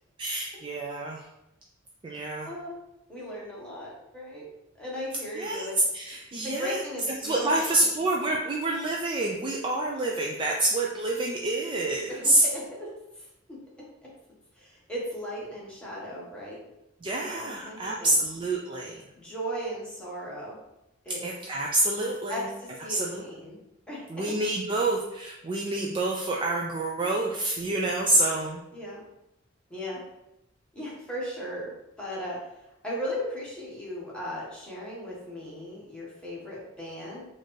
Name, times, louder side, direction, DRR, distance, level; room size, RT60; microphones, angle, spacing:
voice 1, 0.2-1.2 2.0-2.5 5.3-5.7 5.9-6.8 7.1-12.4 17.0-19.0 21.2-22.5 22.9-23.2 24.1-28.6, right 2 dB, 25° right, -2 dB, 0.3 m, -27 dB
voice 2, 2.4-2.8 3.1-4.5 4.8-5.8 6.4-7.8 12.1-13.6 14.0-14.1 14.5-16.6 17.2-18.2 19.1-20.6 21.0-21.2 22.3-23.6 23.9-24.3 28.7-29.0 29.7-30.0 30.7-31.7 32.0-37.2, equal, 5° left, -6 dB, 1.2 m, -37 dB
4.1 x 2.5 x 3.2 m, 0.88 s
head